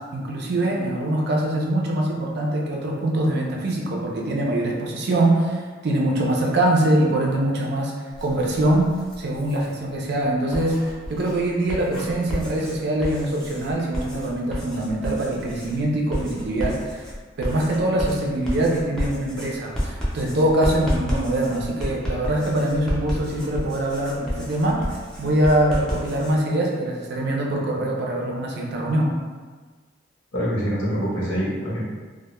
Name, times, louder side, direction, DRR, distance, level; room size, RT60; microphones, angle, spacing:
voice 1, 0.0-17.0 17.4-24.9 25.2-29.1, right 1 dB, 60° right, -1 dB, 0.4 m, -23 dB
Writing, 8.1-9.7 10.3-26.3, equal, 5° left, 0.5 m, -31 dB
voice 2, 30.3-31.8, equal, 80° left, -6 dB, 0.8 m, -25 dB
2.1 x 2.1 x 2.9 m, 1.4 s
head